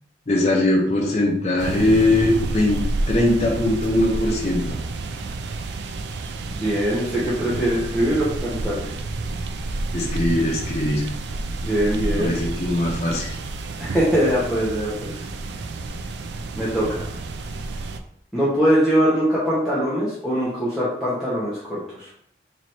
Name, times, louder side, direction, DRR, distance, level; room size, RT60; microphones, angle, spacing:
voice 1, 0.3-4.8 9.9-11.1 12.0-13.3, left 1 dB, 35° left, -2 dB, 0.7 m, -21 dB
sound 1, 1.6-18.0, right 2 dB, 70° right, 0.4 m, -30 dB
voice 2, 6.6-8.9 11.6-12.4 13.8-15.1 16.5-17.1 18.3-22.1, equal, ahead, -10 dB, 0.8 m, -22 dB
3.1 x 3.0 x 4.2 m, 0.70 s
head